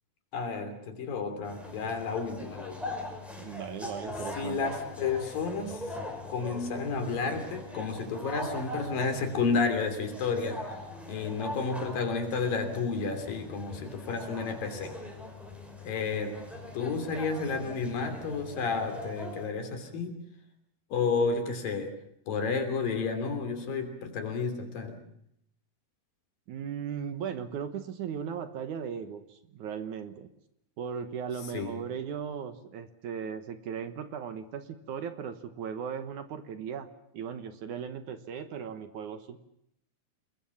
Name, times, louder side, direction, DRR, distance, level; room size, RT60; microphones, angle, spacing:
voice 1, 0.3-3.0 4.4-6.0 6.3-10.8 11.1-15.0 15.8-16.4 16.7-20.2 20.9-21.9 22.3-25.0 31.5-31.8, left 4 dB, 70° left, 7 dB, 4.8 m, -31 dB
sound 1, 1.4-19.5, left 2 dB, ahead, 5.3 m, -42 dB
voice 2, 3.4-4.8 26.5-30.3 30.8-36.9 37.1-39.4, right 7 dB, 65° right, 10 dB, 2.5 m, -37 dB
28.5 x 21.0 x 7.2 m, 0.75 s
omnidirectional pair, 4.2 m